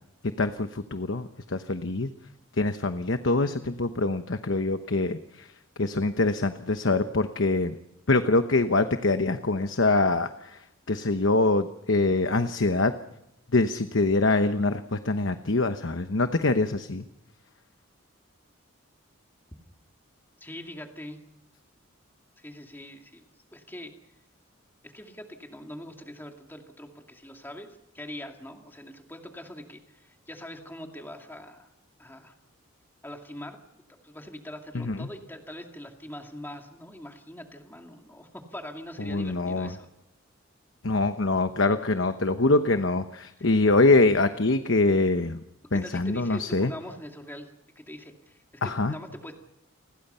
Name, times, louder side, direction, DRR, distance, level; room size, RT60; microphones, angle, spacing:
voice 1, 0.4-2.1 2.6-5.5 5.8-7.8 8.1-10.6 10.9-12.9 13.5-17.0 34.7-35.1 39.0-39.7 40.8-45.4 45.7-46.7 48.6-48.9, left 2 dB, 60° left, 9 dB, 1.0 m, -24 dB
voice 2, 20.4-21.2 22.4-23.2 23.5-23.9 24.8-31.7 32.0-32.3 33.0-33.6 34.0-39.9 43.4-43.5 45.7-49.3, left 1 dB, 10° left, 3 dB, 2.4 m, -42 dB
29.5 x 21.0 x 5.7 m, 0.86 s
head